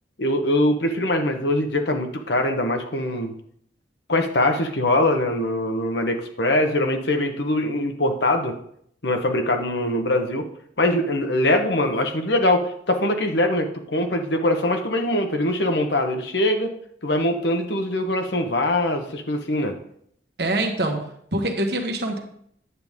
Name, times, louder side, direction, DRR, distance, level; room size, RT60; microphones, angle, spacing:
voice 1, 0.2-3.3 4.1-8.6 9.0-10.4 10.8-16.7 17.0-19.8, left 1 dB, 65° left, 5 dB, 1.1 m, -22 dB
voice 2, 20.4-22.2, right 1 dB, 60° right, 3 dB, 1.3 m, -25 dB
9.6 x 8.0 x 3.6 m, 0.68 s
head